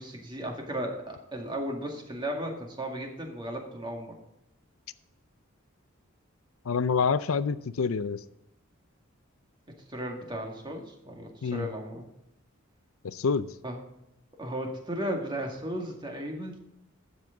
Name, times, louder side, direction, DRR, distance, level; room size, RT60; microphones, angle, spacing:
voice 1, 0.0-4.1 9.9-12.1 13.6-13.8 14.4-16.5, right 1 dB, 20° right, 1 dB, 2.1 m, -35 dB
voice 2, 6.7-8.2 11.4-11.7 13.0-13.5, left 5 dB, 80° left, 14 dB, 0.5 m, -27 dB
12.0 x 8.1 x 3.9 m, 0.84 s
head